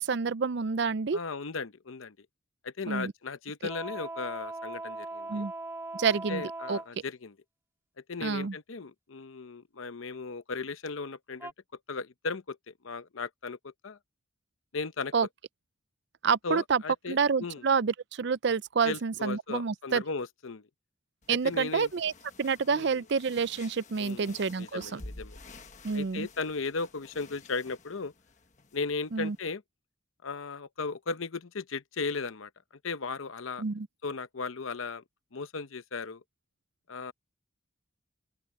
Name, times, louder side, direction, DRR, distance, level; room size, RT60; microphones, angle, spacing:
voice 1, 0.0-1.2 2.9-3.1 5.3-5.5 5.9-6.4 6.7-6.8 8.2-8.5 15.1-15.3 16.2-16.8 17.1-20.0 21.3-22.1 22.4-25.0 25.8-26.3 29.1-29.4 33.6-33.9, right 5 dB, 55° right, 0.5 m, -28 dB
voice 2, 1.1-2.2 2.6-5.5 6.3-7.3 8.1-11.5 11.9-14.0 14.7-15.1 16.4-17.7 18.8-20.6 21.3-21.9 22.7-23.0 24.0-25.4 25.9-28.1 28.7-29.6 30.2-32.5 32.8-33.6 34.0-35.0 35.3-36.2 36.9-37.1, left 4 dB, 75° left, 0.8 m, -36 dB
sound 1, 3.7-6.9 11.4-11.5, right 2 dB, 10° right, 2.0 m, -39 dB
sound 2, 21.2-29.4, left 2 dB, 35° left, 1.4 m, -51 dB
open air
head